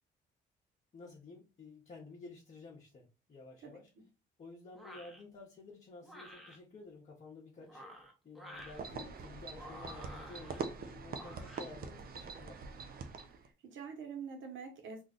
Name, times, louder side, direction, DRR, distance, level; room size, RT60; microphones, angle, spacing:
voice 1, 0.9-3.9 4.4-12.6, left 3 dB, 35° left, 0.9 m, -52 dB
voice 2, 3.6-4.0 13.4-15.0, right 6 dB, 75° right, 1.0 m, -46 dB
sound 1, 4.7-5.2 6.0-6.6 7.6-8.8 9.5-10.6 11.1-11.6, equal, ahead, 0.8 m, -51 dB
sound 2, 8.6-13.5, right 5 dB, 50° right, 0.5 m, -44 dB
2.5 x 2.3 x 3.8 m
cardioid pair, 90°, 20 cm